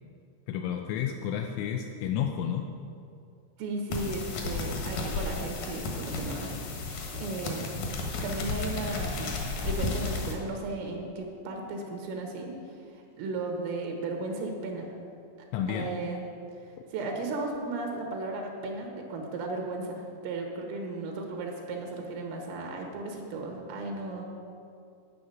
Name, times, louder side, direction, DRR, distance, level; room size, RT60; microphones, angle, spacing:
voice 1, 0.5-2.7 15.5-15.9, left 9 dB, 85° left, 3 dB, 2.9 m, -31 dB
voice 2, 3.6-7.7 8.2-12.5 12.9-14.9 15.7-16.2 16.9-24.3, right 2 dB, 80° right, 2 dB, 3.9 m, -35 dB
sound 1, 3.9-10.3, left 3 dB, 65° left, 2.3 m, -33 dB
11.5 x 6.1 x 9.1 m, 2.4 s
omnidirectional pair, 5.8 m